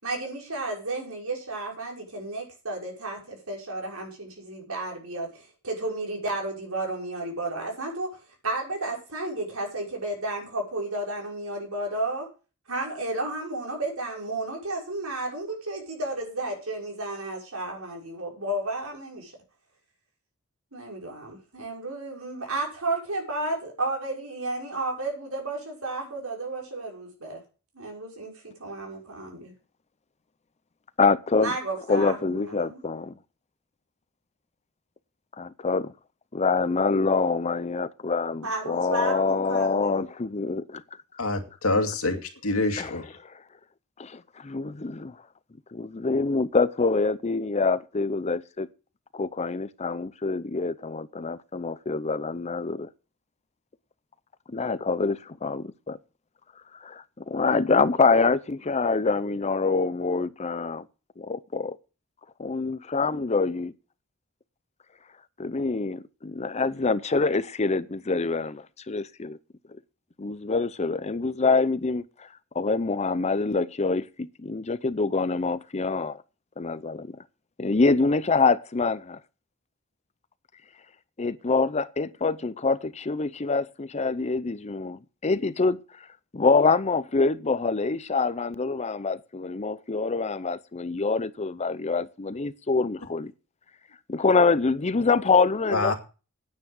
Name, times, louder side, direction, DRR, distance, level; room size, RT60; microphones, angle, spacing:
voice 1, 0.0-12.3 12.7-19.3 20.7-27.4 27.7-29.5 31.4-32.8 38.4-40.0, right 2 dB, 80° right, 5.9 m, -32 dB
voice 2, 31.0-31.5 31.9-33.2 35.4-35.9 36.3-40.8 42.8-43.0 44.0-45.2 45.7-48.7 49.1-52.9 54.5-56.0 56.8-60.8 61.2-61.8 62.4-63.7 65.4-69.4 70.2-72.3 72.5-76.2 76.6-77.2 77.6-79.2 81.2-85.8 86.3-93.3 94.1-95.9, left 4 dB, 30° left, 0.6 m, -25 dB
voice 3, 41.2-43.2 95.7-95.9, left 2 dB, 85° left, 2.4 m, -26 dB
9.7 x 9.6 x 6.5 m
head